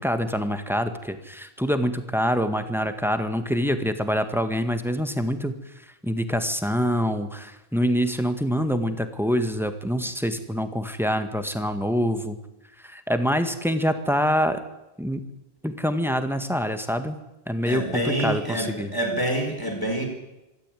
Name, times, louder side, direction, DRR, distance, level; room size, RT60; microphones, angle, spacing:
voice 1, 0.0-5.6 6.0-12.4 12.8-14.6 15.0-15.3 15.6-17.2 17.5-18.9, equal, ahead, 8 dB, 1.7 m, -25 dB
voice 2, 17.6-20.1, right 1 dB, 20° left, 3 dB, 4.9 m, -27 dB
25.5 x 13.5 x 9.3 m, 0.98 s
omnidirectional pair, 1.1 m